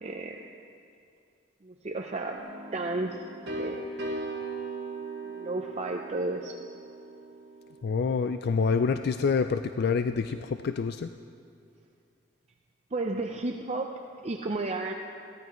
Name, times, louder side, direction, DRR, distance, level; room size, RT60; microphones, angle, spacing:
voice 1, 0.0-0.4 1.6-2.5 2.7-3.3 3.6-3.9 5.3-6.6 12.9-14.9, right 2 dB, 35° right, 2 dB, 0.5 m, -33 dB
sound 1, 2.4-8.1, right 2 dB, 60° right, 1.9 m, -38 dB
voice 2, 7.8-11.1, left 5 dB, 55° left, 9 dB, 0.3 m, -27 dB
21.5 x 16.0 x 3.1 m, 2.4 s
head